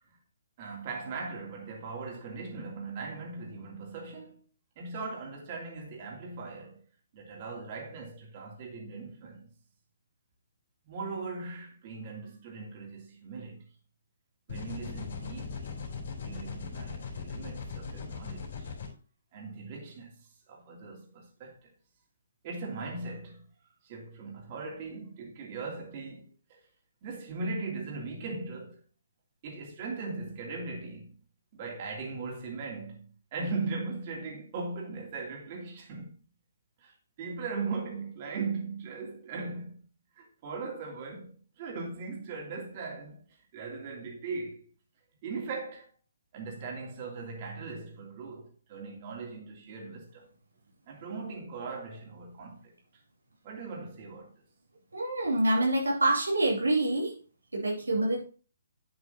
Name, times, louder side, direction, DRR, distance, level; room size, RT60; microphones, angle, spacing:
voice 1, 0.6-4.4 4.8-6.8 7.1-9.5 10.8-13.7 14.5-15.9 16.2-18.7 19.3-20.2 20.5-21.7 22.4-23.4 23.8-26.7 27.0-28.8 29.4-31.2 31.5-36.1 36.8-39.8 40.2-44.7 45.2-45.9 46.3-50.3 50.9-52.7 53.4-54.3, right 4 dB, 40° right, 2.9 m, -39 dB
sound 1, 14.5-18.9, left 5 dB, 60° left, 3.3 m, -39 dB
voice 2, 54.9-57.1 57.5-58.2, right 1 dB, 90° right, 2.7 m, -26 dB
8.8 x 7.8 x 2.8 m
figure-of-eight pair, 140°, 0 cm